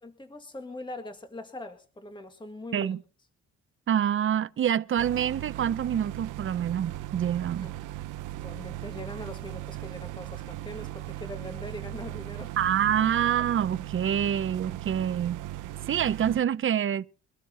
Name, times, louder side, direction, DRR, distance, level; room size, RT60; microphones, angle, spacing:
voice 1, 0.0-2.9 7.6-8.0 8.4-12.5, left 1 dB, 15° left, 1.8 m, -42 dB
voice 2, 3.9-7.7 12.6-15.4 15.9-17.1, right 9 dB, 45° right, 0.7 m, -26 dB
sound 1, 5.0-16.4, right 15 dB, 90° right, 0.6 m, -38 dB
23.5 x 13.0 x 2.9 m
cardioid pair, 90°, 30 cm